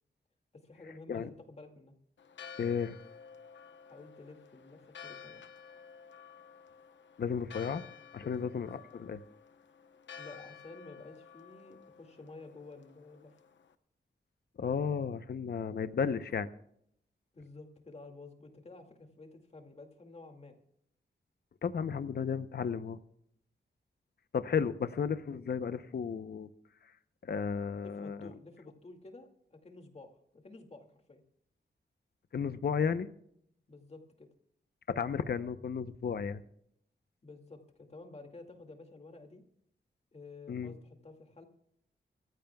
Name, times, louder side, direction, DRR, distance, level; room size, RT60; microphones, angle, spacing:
voice 1, 0.5-2.0 3.9-5.4 8.2-8.5 10.2-13.3 17.3-20.6 27.8-30.2 30.4-31.2 33.7-34.3 37.2-39.4 40.1-41.4, left 3 dB, 35° left, 4 dB, 2.3 m, -51 dB
Church bell, 2.2-13.7, left 6 dB, 85° left, 1.0 m, -52 dB
voice 2, 2.6-3.0 7.2-7.8 8.1-9.2 14.6-16.5 21.6-23.0 24.3-26.5 27.2-28.3 32.3-33.1 34.9-36.4 40.5-40.7, left 6 dB, 60° left, 12 dB, 0.8 m, -33 dB
24.5 x 16.0 x 2.3 m, 0.71 s
wide cardioid pair, 155°, 19 cm